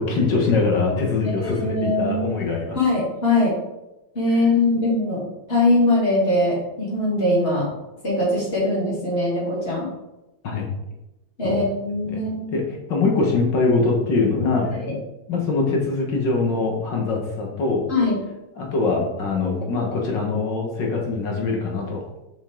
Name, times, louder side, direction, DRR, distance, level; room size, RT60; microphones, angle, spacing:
voice 1, 0.0-2.8 10.4-10.6 11.4-11.6 12.1-12.2 12.5-12.6 12.9-14.7 15.3-17.8 18.6-22.0, left 3 dB, 70° left, 0 dB, 2.1 m, -22 dB
voice 2, 1.2-2.5 2.7-3.5 4.1-5.2 5.5-7.7 8.0-9.9 11.4-12.5 14.7-14.9 17.9-18.2, left 2 dB, 30° left, -6 dB, 3.2 m, -21 dB
7.2 x 5.6 x 3.8 m, 0.96 s
omnidirectional pair, 2.0 m